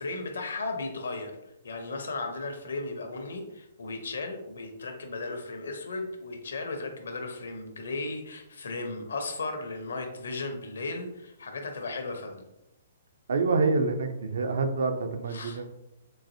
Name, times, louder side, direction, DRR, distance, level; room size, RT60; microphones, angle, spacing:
voice 1, 0.0-1.4 1.6-12.5 15.3-15.7, left 3 dB, 65° left, 5 dB, 0.6 m, -35 dB
voice 2, 13.3-15.7, right 3 dB, 60° right, 7 dB, 0.4 m, -27 dB
3.9 x 2.5 x 2.6 m, 0.88 s
figure-of-eight pair, 120°, 0 cm